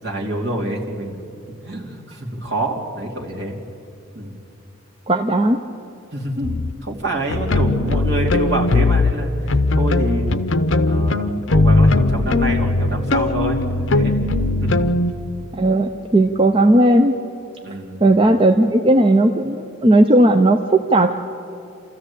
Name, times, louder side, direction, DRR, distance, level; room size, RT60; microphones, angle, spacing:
voice 1, 0.0-1.2 1.6-3.6 4.1-4.3 6.1-6.6 6.8-10.3 10.9-14.2 14.6-14.8 17.6-18.0, right 1 dB, 55° right, -1 dB, 2.9 m, -26 dB
voice 2, 5.1-5.6 15.6-17.2 18.0-21.1, right 1 dB, 25° right, 4 dB, 0.6 m, -15 dB
sound 1, 6.4-6.7 7.3-9.1 9.5-15.1, left 2 dB, 70° left, 0.8 m, -18 dB
28.5 x 14.0 x 8.4 m, 2.6 s
head